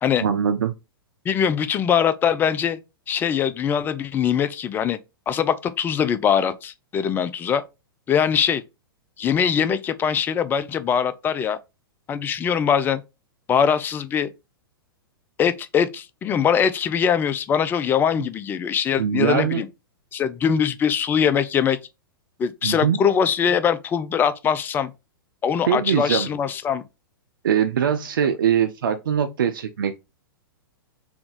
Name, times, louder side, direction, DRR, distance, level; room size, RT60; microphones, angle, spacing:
voice 1, 0.2-0.7 19.0-19.6 22.6-23.0 25.7-26.3 27.4-29.9, right 8 dB, 60° right, 0.5 m, -22 dB
voice 2, 1.3-2.8 3.1-5.0 5.3-7.6 8.1-8.6 9.2-11.6 12.1-13.0 13.5-14.3 15.4-19.7 20.1-21.8 22.4-24.9 25.4-26.8, left 8 dB, 15° left, 0.4 m, -22 dB
3.6 x 3.4 x 3.8 m
figure-of-eight pair, 105°, 12 cm